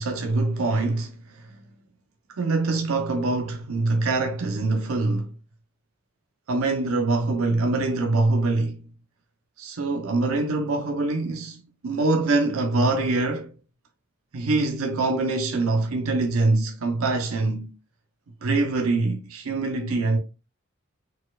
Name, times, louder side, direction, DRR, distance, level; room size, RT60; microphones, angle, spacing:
voice 1, 0.0-1.5 2.3-5.3 6.5-8.8 9.6-13.5 14.3-17.7 18.4-20.2, right 3 dB, 85° right, 0.6 m, -24 dB
4.3 x 4.2 x 2.3 m
head